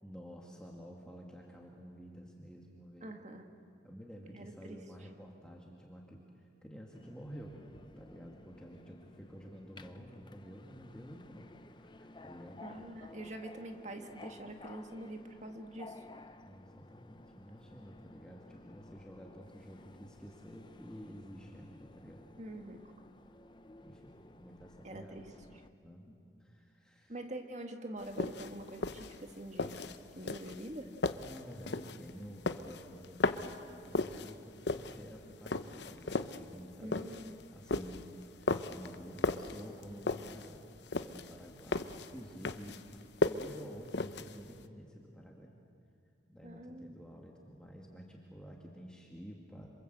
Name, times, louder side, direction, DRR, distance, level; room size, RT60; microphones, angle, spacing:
voice 1, 0.0-3.1 3.8-7.7 8.0-11.5 11.8-12.6 16.5-22.2 23.8-25.2 25.8-26.1 26.4-27.2 31.1-37.2 37.5-38.1 38.3-40.6 41.0-42.8 43.2-45.5 46.3-49.8, equal, 5° left, -1 dB, 2.1 m, -50 dB
voice 2, 3.0-3.5 4.3-4.8 12.6-16.0 22.4-22.8 24.8-25.2 27.1-29.8 30.2-30.9 36.8-37.4 46.4-47.0, right 1 dB, 35° right, 5 dB, 1.9 m, -45 dB
Subway metro underground, 6.9-25.7, left 2 dB, 25° left, 0.7 m, -55 dB
sound 1, 28.0-44.6, left 3 dB, 65° left, 0.9 m, -36 dB
27.0 x 27.0 x 8.1 m, 2.4 s
head